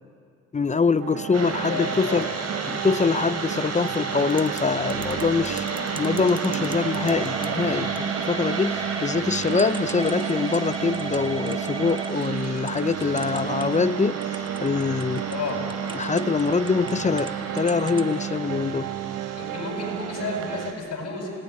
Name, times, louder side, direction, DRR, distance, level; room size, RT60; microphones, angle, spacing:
voice 1, 0.5-2.3 2.7-5.6 6.0-15.3 15.9-18.9, left 4 dB, 25° left, 15 dB, 0.7 m, -24 dB
sound 1, 1.0-20.7, right 11 dB, 85° right, 0.8 m, -33 dB
voice 2, 1.3-2.2 5.0-6.7 15.3-15.6 19.3-21.4, left 3 dB, 55° left, 1 dB, 8.0 m, -33 dB
sound 2, 1.3-20.7, right 4 dB, 55° right, 4.5 m, -33 dB
Typing / Telephone, 4.2-4.6 4.9-13.9 14.2-17.3 17.6-18.1, right 3 dB, 15° right, 1.2 m, -36 dB
26.5 x 19.5 x 9.8 m, 2.4 s
cardioid pair, 90°, 30 cm